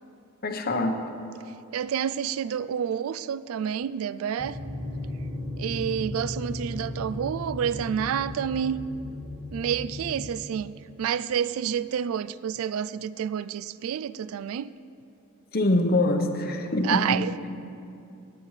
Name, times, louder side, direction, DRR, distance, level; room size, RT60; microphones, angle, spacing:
voice 1, 0.4-1.0 15.5-17.0, left 2 dB, 45° left, 5 dB, 0.9 m, -24 dB
voice 2, 1.7-4.6 5.6-8.8 9.5-10.7 11.0-14.7 16.8-17.5, right 8 dB, 70° right, 16 dB, 0.3 m, -29 dB
sound 1, 4.4-10.3, left 1 dB, 15° right, 2.1 m, -35 dB
18.0 x 9.6 x 3.2 m, 2.7 s
head